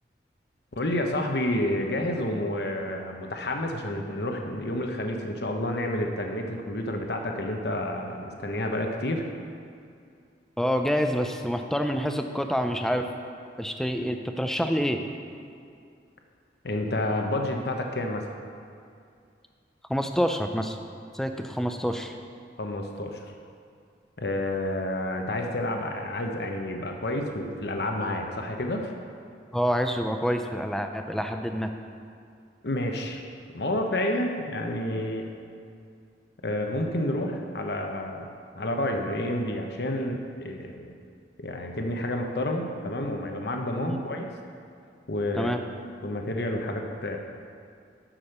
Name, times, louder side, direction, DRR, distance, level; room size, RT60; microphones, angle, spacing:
voice 1, 0.7-9.2 16.6-18.2 22.6-23.3 24.2-28.9 32.6-33.2 33.5-35.2 36.4-38.3 38.5-40.9 41.4-44.3 45.1-45.5 46.0-47.2, left 1 dB, 65° left, 3 dB, 0.9 m, -29 dB
voice 2, 10.6-13.1 13.6-15.1 19.9-20.8 21.1-22.1 29.5-31.7 43.9-44.0 45.4-45.6, equal, ahead, 6 dB, 0.4 m, -27 dB
9.9 x 6.3 x 6.7 m, 2.4 s
head